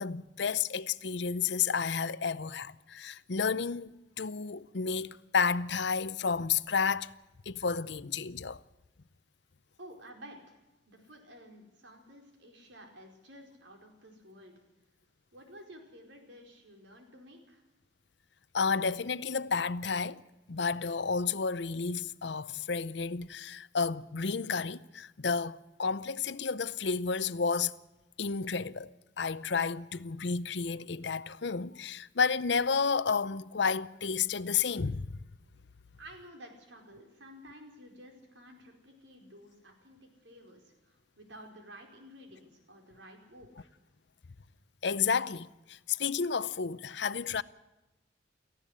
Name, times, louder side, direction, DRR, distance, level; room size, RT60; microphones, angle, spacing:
voice 1, 0.0-7.1 7.5-8.6 18.5-20.2 20.5-27.8 28.2-28.9 29.2-35.2 44.8-47.4, left 5 dB, 65° left, 0.7 m, -31 dB
voice 2, 9.8-10.6 10.9-14.5 15.3-17.6 36.0-43.7, equal, 80° right, 4.8 m, -52 dB
18.5 x 14.5 x 10.0 m
head